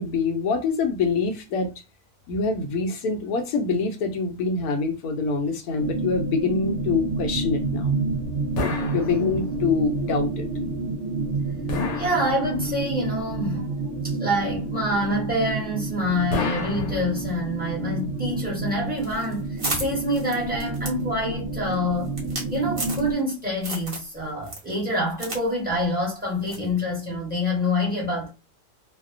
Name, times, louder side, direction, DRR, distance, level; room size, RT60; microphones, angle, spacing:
voice 1, 0.0-1.7 2.3-7.9 8.9-10.5, left 4 dB, 70° left, 1.1 m, -25 dB
sound 1, 5.8-23.1, right 3 dB, 70° right, 0.9 m, -29 dB
sound 2, 8.6-9.7 11.7-12.9 16.3-17.6, left 3 dB, 90° left, 1.2 m, -30 dB
voice 2, 12.0-22.1 22.5-28.3, left 1 dB, 5° right, 0.8 m, -26 dB
sound 3, 19.0-23.3 23.6-24.1 24.4-25.4 25.7-25.8 26.5-26.7, right 2 dB, 45° right, 0.4 m, -33 dB
2.8 x 2.0 x 2.4 m
omnidirectional pair, 1.8 m